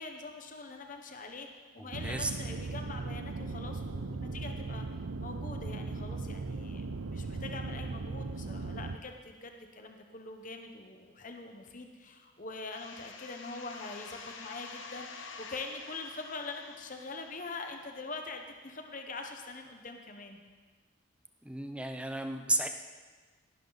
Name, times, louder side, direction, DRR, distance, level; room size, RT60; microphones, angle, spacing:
voice 1, 0.0-1.5 1.7-4.8 5.2-20.4, left 3 dB, 40° left, 4 dB, 1.0 m, -43 dB
voice 2, 1.8-2.3 21.4-22.7, right 2 dB, 5° right, 6 dB, 0.7 m, -33 dB
sound 1, 1.9-9.0, right 3 dB, 85° right, 0.6 m, -38 dB
sound 2, 12.7-18.2, left 4 dB, 70° left, 1.1 m, -48 dB
17.5 x 12.0 x 4.1 m, 1.4 s
head